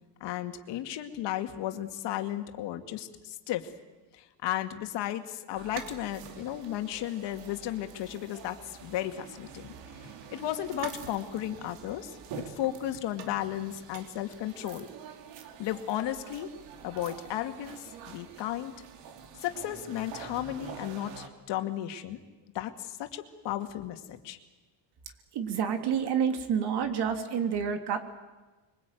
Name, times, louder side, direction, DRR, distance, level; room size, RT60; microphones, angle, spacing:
voice 1, 0.2-3.7 4.2-9.7 10.3-12.2 12.5-14.9 15.6-16.5 16.8-18.7 19.4-22.2 22.5-24.4, left 12 dB, 75° left, 7 dB, 2.3 m, -34 dB
sound 1, 5.5-21.3, right 7 dB, 80° right, 3.3 m, -46 dB
voice 2, 25.3-28.0, right 7 dB, 65° right, 6 dB, 3.2 m, -28 dB
26.0 x 23.0 x 9.3 m, 1.2 s
cardioid pair, 135°, 43 cm